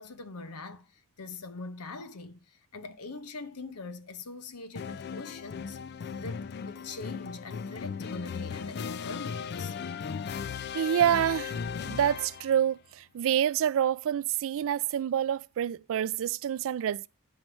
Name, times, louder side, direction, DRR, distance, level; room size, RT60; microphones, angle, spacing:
voice 1, 0.0-5.8 6.2-9.8, left 3 dB, 85° left, 0.8 m, -42 dB
sound 1, 4.8-12.6, left 6 dB, 50° left, 0.4 m, -37 dB
voice 2, 10.7-17.1, right 9 dB, 60° right, 0.3 m, -27 dB
9.3 x 5.5 x 4.4 m
head